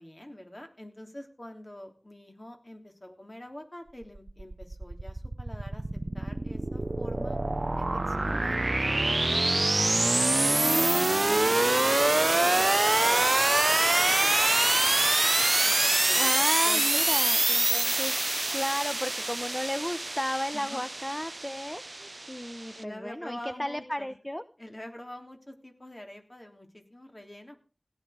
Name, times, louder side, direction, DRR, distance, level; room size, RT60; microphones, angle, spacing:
voice 1, 0.0-5.8 6.1-7.4 7.7-9.5 9.9-14.5 15.6-17.0 20.5-20.8 22.7-24.1 24.6-27.6, left 1 dB, 35° left, 3 dB, 3.2 m, -45 dB
sound 1, 4.0-22.8, right 2 dB, 60° right, 0.6 m, -25 dB
voice 2, 10.5-10.9 16.2-24.4, left 1 dB, 20° left, 11 dB, 0.8 m, -34 dB
16.5 x 10.0 x 5.0 m, 0.36 s
wide cardioid pair, 50°, 0 cm